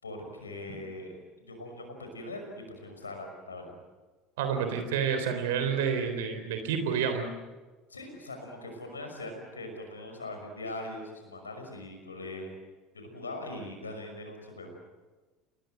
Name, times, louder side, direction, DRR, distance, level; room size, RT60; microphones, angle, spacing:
voice 1, 0.0-3.8 7.9-12.5 12.9-14.8, left 2 dB, 85° left, 4 dB, 5.8 m, -41 dB
voice 2, 4.4-7.3, right 7 dB, 70° right, 7 dB, 3.6 m, -29 dB
29.0 x 21.0 x 8.0 m, 1.3 s
figure-of-eight pair, 70°, 0 cm